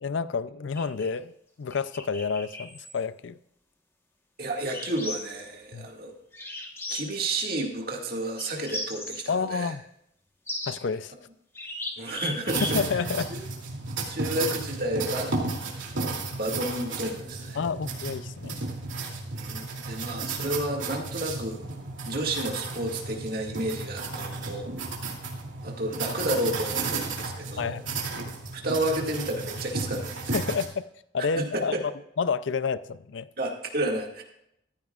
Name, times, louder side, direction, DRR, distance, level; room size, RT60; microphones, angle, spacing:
voice 1, 0.0-1.3 1.6-3.4 5.7-5.9 9.3-9.8 10.7-11.1 12.7-13.3 17.5-18.6 27.6-27.8 30.3-30.9 31.1-31.7 32.2-33.3, left 5 dB, 70° left, 0.5 m, -29 dB
sound 1, 0.8-1.1 1.7-3.0 4.6-5.4 6.3-7.5 8.4-9.3 10.5-11.0 11.5-13.0, left 1 dB, 10° left, 1.2 m, -37 dB
voice 2, 4.4-6.2 6.9-9.7 12.0-13.0 13.3-13.4 14.1-15.4 15.9-17.6 19.3-21.6 22.1-24.7 25.6-27.8 28.5-30.3 31.4-31.8 33.4-34.2, right 1 dB, 50° right, 2.1 m, -31 dB
sound 2, 12.5-30.6, right 3 dB, 75° right, 2.7 m, -33 dB
14.5 x 14.0 x 2.4 m
head